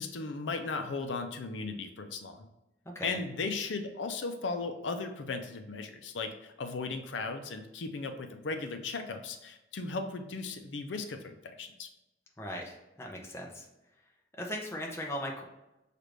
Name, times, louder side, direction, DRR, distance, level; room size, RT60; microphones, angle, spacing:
voice 1, 0.0-2.5 3.0-11.9, left 4 dB, 90° left, 7 dB, 0.5 m, -36 dB
voice 2, 12.4-13.7 14.4-15.4, equal, 15° left, 0 dB, 0.6 m, -38 dB
6.5 x 2.5 x 3.2 m, 0.94 s
head